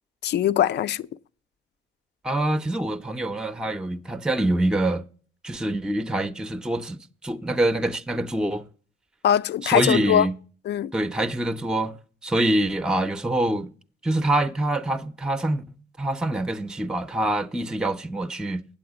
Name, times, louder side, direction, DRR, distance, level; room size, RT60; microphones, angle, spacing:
voice 1, 0.2-1.1 9.2-10.3 10.7-10.9, left 10 dB, 60° left, 0.4 m, -21 dB
voice 2, 2.2-5.0 5.4-8.7 9.6-10.4 10.9-11.9 12.2-13.7 14.0-15.6 16.0-18.7, right 1 dB, 5° right, 0.5 m, -25 dB
8.7 x 7.8 x 4.8 m
cardioid pair, 90°, 20 cm